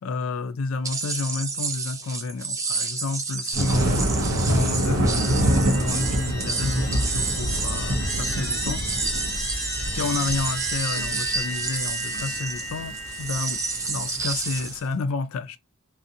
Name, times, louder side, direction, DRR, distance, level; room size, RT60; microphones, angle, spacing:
voice 1, 0.0-4.1 4.5-8.8 9.8-13.6 13.9-15.6, left 4 dB, 75° left, 0.4 m, -30 dB
sound 1, 0.8-14.8, right 4 dB, 15° right, 0.4 m, -30 dB
Thunder, 3.5-14.6, right 1 dB, 80° right, 0.6 m, -26 dB
sound 2, 4.9-14.2, equal, 10° left, 0.9 m, -34 dB
2.5 x 2.0 x 2.6 m
head